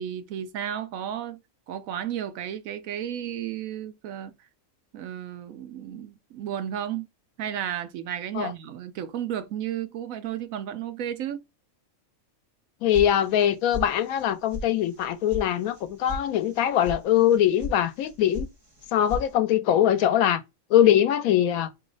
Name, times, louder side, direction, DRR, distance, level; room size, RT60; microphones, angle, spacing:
voice 1, 0.0-1.4 1.7-4.3 4.9-7.1 7.4-11.4, right 10 dB, 75° right, 1.0 m, -33 dB
voice 2, 12.8-18.5 18.9-20.4 20.7-21.7, left 10 dB, 85° left, 1.0 m, -22 dB
sound 1, 12.9-13.5 13.7-14.3 14.5-14.6 15.0-15.4 15.7-16.2 16.5-17.0 17.3-17.8 18.0-18.5 18.8-19.3, left 2 dB, 25° right, 0.5 m, -34 dB
4.6 x 2.0 x 3.8 m
omnidirectional pair, 1.5 m